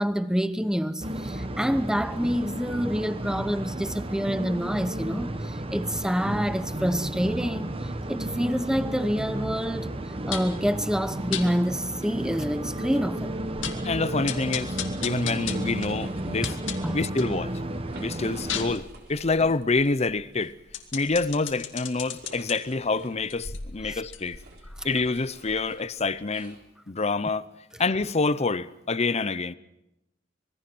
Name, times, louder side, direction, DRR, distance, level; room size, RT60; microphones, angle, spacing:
voice 1, 0.0-9.9 10.3-13.3 16.4-17.0 23.9-24.0, equal, 5° right, 0.8 m, -27 dB
sound 1, 1.0-18.8, right 1 dB, 30° right, 1.1 m, -33 dB
sound 2, 10.3-10.6 11.3-11.5 12.0-12.1 12.4-12.5 13.0-13.1 13.4-13.9 14.3-17.4 17.8-22.6 23.2-25.9 26.2-26.3, left 8 dB, 75° left, 2.2 m, -37 dB
voice 2, 13.8-16.5 16.9-17.5 18.0-18.8 19.1-20.5 20.9-24.4 24.8-26.6 26.9-27.5 27.8-29.5, left 3 dB, 35° left, 0.7 m, -27 dB
sound 3, 15.2-16.6 17.0-17.3 17.7-19.6 19.9-20.0 21.0-26.6, right 2 dB, 55° right, 4.0 m, -51 dB
26.0 x 21.0 x 6.2 m
head